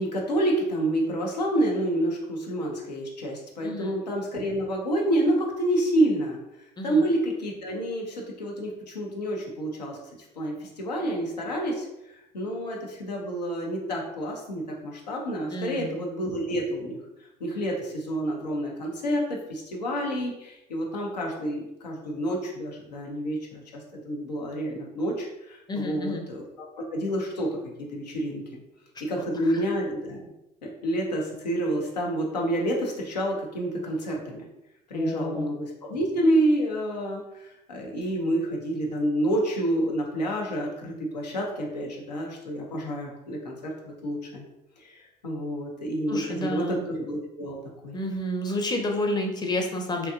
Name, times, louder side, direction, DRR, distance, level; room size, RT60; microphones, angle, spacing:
voice 1, 0.0-6.4 6.8-10.0 10.4-17.0 17.4-26.7 26.9-28.6 29.0-30.2 30.6-34.5 34.9-44.4 44.8-47.6 47.8-48.0, right 1 dB, 85° left, -1 dB, 0.5 m, -28 dB
voice 2, 3.6-4.0 6.8-7.0 15.5-16.0 25.7-26.2 29.2-29.3 34.9-35.5 46.1-46.8 47.9-50.1, left 1 dB, 20° left, 2 dB, 0.6 m, -30 dB
2.7 x 2.2 x 2.4 m, 0.88 s
figure-of-eight pair, 55°, 21 cm